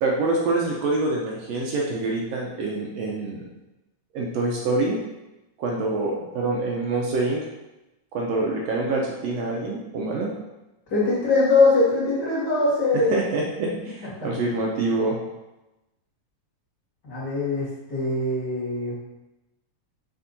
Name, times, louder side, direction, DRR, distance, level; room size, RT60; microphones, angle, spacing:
voice 1, 0.0-3.4 4.1-5.0 5.6-7.4 8.1-10.3 12.9-15.2, right 2 dB, 75° right, -1 dB, 1.6 m, -26 dB
voice 2, 10.9-13.2 17.0-18.9, left 3 dB, 35° left, -8 dB, 2.8 m, -22 dB
7.0 x 3.6 x 4.0 m, 1.0 s
omnidirectional pair, 3.6 m